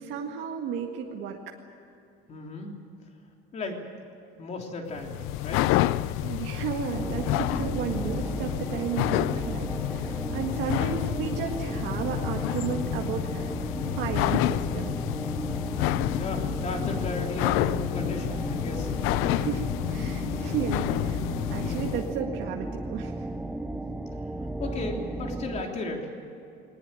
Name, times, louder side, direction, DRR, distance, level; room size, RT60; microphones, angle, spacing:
voice 1, 0.0-1.5 6.2-13.5 14.0-14.9 19.3-21.2 21.5-23.3, right 7 dB, 65° right, 1 dB, 1.8 m, -33 dB
voice 2, 2.3-2.7 3.5-3.8 4.4-5.7 16.2-18.9 24.6-26.2, left 3 dB, 30° left, 2 dB, 3.4 m, -35 dB
sound 1, 4.9-22.1, left 15 dB, 80° left, 0.6 m, -29 dB
sound 2, 6.9-25.6, right 2 dB, 5° right, 0.7 m, -34 dB
21.0 x 19.5 x 9.1 m, 2.6 s
cardioid pair, 170°, 21 cm